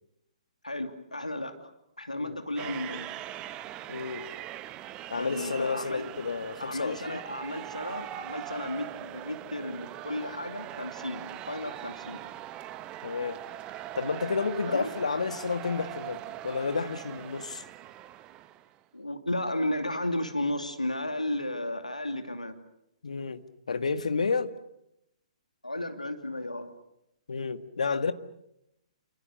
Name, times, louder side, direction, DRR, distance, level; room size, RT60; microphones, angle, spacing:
voice 1, 0.6-1.7 2.0-3.1 5.2-6.0 6.6-12.2 14.7-14.9 18.9-22.6 25.6-26.7, left 1 dB, 90° left, 2.7 m, -34 dB
sound 1, 2.6-18.8, right 13 dB, 25° right, 1.2 m, -41 dB
voice 2, 3.9-4.2 5.1-7.2 13.0-13.4 14.0-17.6 23.0-24.5 27.3-28.1, left 4 dB, 70° left, 1.8 m, -31 dB
30.0 x 26.5 x 6.5 m
figure-of-eight pair, 125°, 4 cm